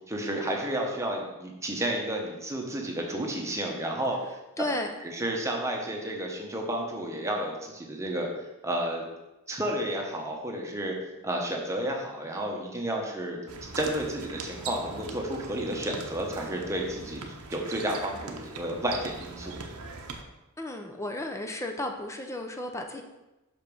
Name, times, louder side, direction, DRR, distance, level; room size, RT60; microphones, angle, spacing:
voice 1, 0.1-4.2 5.2-8.3 8.6-9.1 9.5-10.9 11.2-19.6, right 1 dB, 15° right, 0 dB, 1.0 m, -31 dB
voice 2, 4.6-4.9 20.6-23.0, left 1 dB, 15° left, 4 dB, 0.6 m, -33 dB
sound 1, 13.5-20.2, right 4 dB, 85° right, 0.8 m, -41 dB
6.0 x 5.2 x 5.3 m, 1.0 s
head